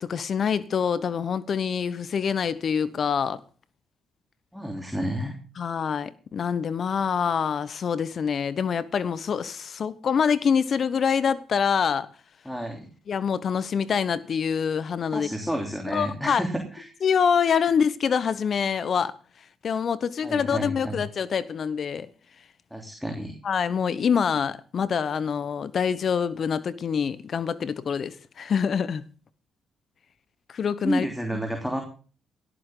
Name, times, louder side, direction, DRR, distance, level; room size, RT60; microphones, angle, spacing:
voice 1, 0.0-3.4 5.6-12.1 13.1-15.3 15.9-16.4 17.0-19.1 19.6-22.1 23.4-29.0 30.5-31.1, left 7 dB, 50° left, 0.9 m, -25 dB
voice 2, 4.5-5.3 12.4-12.9 15.1-16.9 17.4-17.6 20.2-21.0 22.7-23.3 30.8-31.8, equal, ahead, 3.2 m, -30 dB
17.5 x 13.0 x 3.8 m
cardioid pair, 90°, 0 cm